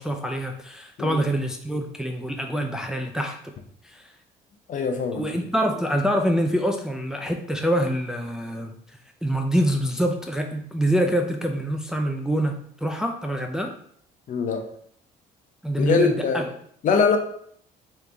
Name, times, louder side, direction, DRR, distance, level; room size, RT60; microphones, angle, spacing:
voice 1, 0.0-3.5 3.8-4.1 5.1-8.8 9.2-13.7 15.6-16.4, equal, 5° right, 3 dB, 0.4 m, -25 dB
voice 2, 4.7-5.3 14.3-14.7 15.8-16.4 16.8-17.2, left 5 dB, 50° left, 5 dB, 0.7 m, -22 dB
3.4 x 3.2 x 3.8 m, 0.64 s
cardioid pair, 110°, 17 cm